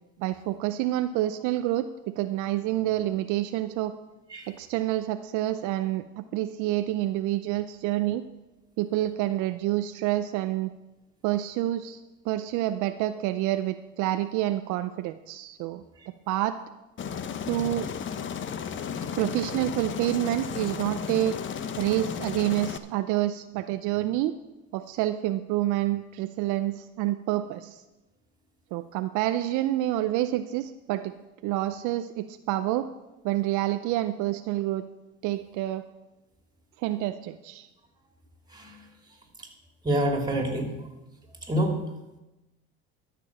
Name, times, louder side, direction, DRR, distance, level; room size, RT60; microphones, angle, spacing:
voice 1, 0.2-3.9 4.5-8.2 8.8-10.7 11.2-12.0 12.2-15.8 16.3-16.6 17.5-17.9 19.2-21.4 21.8-24.3 24.7-27.8 28.7-31.1 31.4-32.9 33.2-34.9 35.2-35.8 36.8-37.7, right 14 dB, 65° right, 10 dB, 0.6 m, -28 dB
Aircraft, 17.0-22.8, left 7 dB, 35° left, 0.8 m, -34 dB
voice 2, 39.8-40.7 41.5-41.7, right 1 dB, 15° right, 2 dB, 3.0 m, -26 dB
13.0 x 6.8 x 6.1 m, 1.0 s
supercardioid pair, 90°, 32 cm